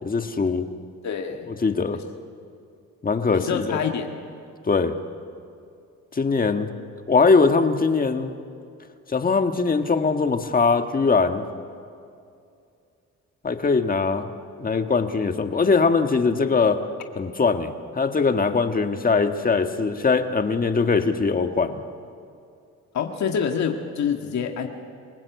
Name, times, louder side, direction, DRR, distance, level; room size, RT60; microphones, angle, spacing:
voice 1, 0.0-0.7 1.6-2.0 3.0-3.8 4.7-4.9 6.1-6.8 7.1-8.3 9.1-11.4 13.4-14.3 14.6-16.8 17.1-21.8, left 4 dB, 30° left, 7 dB, 1.5 m, -21 dB
voice 2, 1.0-1.5 3.3-4.1 22.9-24.7, left 7 dB, 65° left, 3 dB, 1.8 m, -26 dB
26.5 x 18.0 x 8.2 m, 2.5 s
cardioid pair, 90°, 30 cm